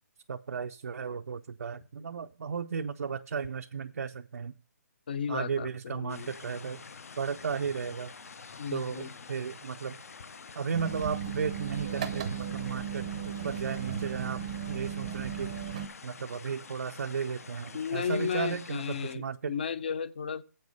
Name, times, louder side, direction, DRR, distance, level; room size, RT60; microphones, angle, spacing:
voice 1, 0.3-4.5 5.3-6.8 7.2-8.1 8.7-10.0 10.5-15.5 16.0-19.5, right 6 dB, 65° right, 6 dB, 0.5 m, -35 dB
voice 2, 5.1-6.3 8.6-9.1 17.7-20.4, left 7 dB, 35° left, 16 dB, 0.5 m, -34 dB
sound 1, 6.1-19.2, left 5 dB, 55° left, 0.8 m, -48 dB
sound 2, 10.7-15.9, right 8 dB, 20° right, 0.6 m, -36 dB
7.8 x 5.4 x 6.3 m, 0.38 s
hypercardioid pair, 175°, 9 cm